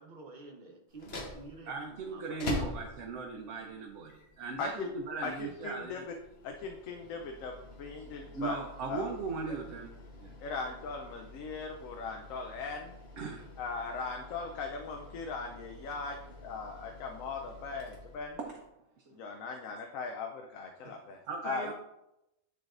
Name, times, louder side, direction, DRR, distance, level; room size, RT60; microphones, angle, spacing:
voice 1, 0.0-2.8, right 2 dB, 40° right, 2 dB, 1.0 m, -50 dB
sound 1, 0.9-18.7, left 3 dB, 55° left, 1.2 m, -46 dB
voice 2, 1.7-6.1 8.3-9.9 10.2-10.3 13.2-13.5 18.5-18.6 20.8-20.9 21.2-21.7, right 4 dB, 70° right, 0 dB, 1.1 m, -38 dB
voice 3, 4.6-4.9 5.2-6.1 6.4-8.6 8.9-9.1 10.4-12.9 13.6-16.2 16.4-18.4 19.1-21.2 21.4-21.7, left 4 dB, 90° left, 3 dB, 1.0 m, -39 dB
10.0 x 3.9 x 2.5 m, 0.88 s
omnidirectional pair, 1.3 m